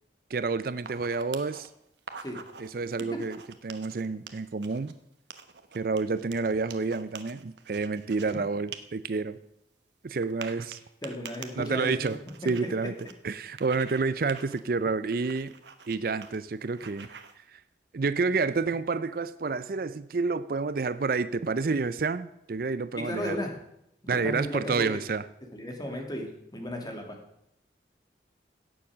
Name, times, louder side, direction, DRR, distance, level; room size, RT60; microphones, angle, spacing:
voice 1, 0.3-1.7 2.6-4.9 5.7-9.4 10.0-10.8 11.6-12.2 12.4-12.9 13.2-15.5 15.9-17.1 17.5-17.6 17.9-23.4 24.1-25.2, right 4 dB, 55° right, 14 dB, 0.5 m, -29 dB
sound 1, 0.8-1.7 2.0-2.7 3.0-4.9 5.3-8.3 8.7-8.8 9.1-9.2 10.2-13.1 13.6-14.0 14.3-14.6 15.1-16.0 16.2-16.4 16.6-17.3, right 6 dB, 75° right, 1.1 m, -45 dB
voice 2, 11.0-12.1 12.6-12.9 22.9-23.5 24.0-24.9 25.5-27.2, equal, 20° left, 2 dB, 2.2 m, -35 dB
17.0 x 7.1 x 6.2 m, 0.79 s
head